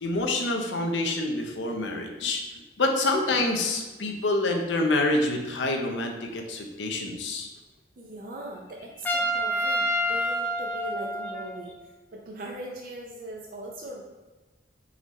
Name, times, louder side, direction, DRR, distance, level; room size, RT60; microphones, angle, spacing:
voice 1, 0.0-2.4 2.8-7.5, left 2 dB, 85° left, 3 dB, 0.7 m, -27 dB
voice 2, 8.0-11.7 12.1-14.0, right 1 dB, 50° right, -1 dB, 0.5 m, -40 dB
Trumpet, 9.0-11.7, equal, 10° left, 0.3 m, -28 dB
4.0 x 3.9 x 3.1 m, 1.2 s
head